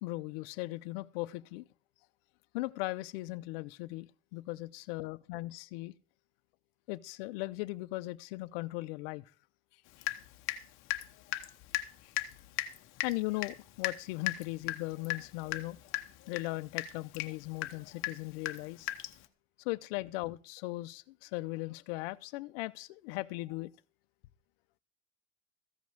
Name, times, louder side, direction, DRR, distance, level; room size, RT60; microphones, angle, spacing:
voice 1, 0.0-1.6 2.5-5.9 6.9-9.2 12.0-12.1 13.0-15.8 16.3-18.9 19.6-23.7, left 20 dB, 55° left, 0.7 m, -38 dB
Water tap faucet / Drip, 10.0-10.6 10.9-19.3, left 15 dB, 35° left, 1.0 m, -37 dB
14.5 x 5.3 x 7.7 m
supercardioid pair, 160°, 34 cm